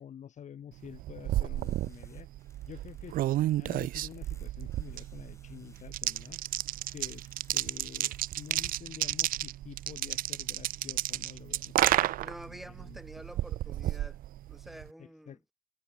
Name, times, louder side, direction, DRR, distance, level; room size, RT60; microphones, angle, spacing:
voice 1, 0.0-2.3 2.7-3.2 3.5-6.4 6.9-13.0 15.0-15.5, left 9 dB, 45° left, 1.4 m, -48 dB
sound 1, 0.8-14.9, right 14 dB, 60° right, 0.4 m, -32 dB
sound 2, 1.5-8.8, left 3 dB, 15° left, 5.3 m, -65 dB
voice 2, 12.2-14.2 14.5-15.4, equal, ahead, 3.3 m, -48 dB
cardioid pair, 110°, 17 cm